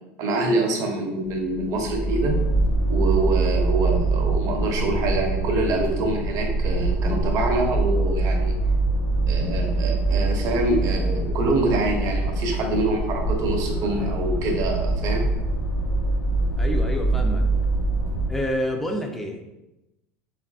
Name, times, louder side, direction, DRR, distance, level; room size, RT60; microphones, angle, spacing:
voice 1, 0.2-2.4 2.9-8.6 9.3-15.3, right 2 dB, 50° right, 2 dB, 0.6 m, -25 dB
sound 1, 1.3-18.5, right 2 dB, 85° left, 0.7 m, -24 dB
voice 2, 16.6-17.5 18.3-19.6, equal, 5° left, 2 dB, 0.3 m, -28 dB
3.2 x 2.4 x 2.3 m, 0.94 s
supercardioid pair, 105°, 7 cm